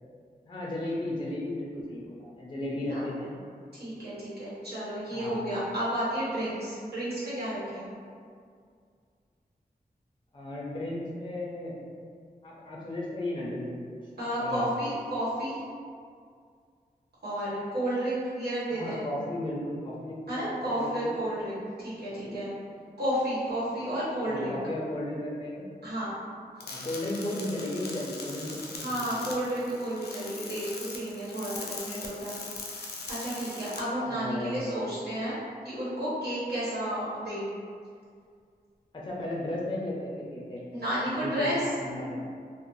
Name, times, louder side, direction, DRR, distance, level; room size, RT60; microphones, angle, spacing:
voice 1, 0.4-3.4 5.1-5.5 10.3-11.8 12.4-14.0 14.3-14.6 18.7-20.2 20.5-21.1 22.1-22.4 24.2-25.7 26.6-29.3 34.1-34.9 38.9-42.3, left 1 dB, 30° left, -5 dB, 0.4 m, -35 dB
voice 2, 3.7-7.9 14.2-15.6 17.2-19.0 20.3-22.5 23.0-24.5 25.8-26.1 28.8-32.3 32.7-32.8 33.1-35.3 35.6-37.5 40.7-41.7 42.0-42.2, equal, 90° right, -11 dB, 1.1 m, -32 dB
sound 1, 26.6-33.8, left 3 dB, 90° left, 0.4 m, -41 dB
2.5 x 2.0 x 3.0 m, 2.2 s
wide cardioid pair, 100°, 16 cm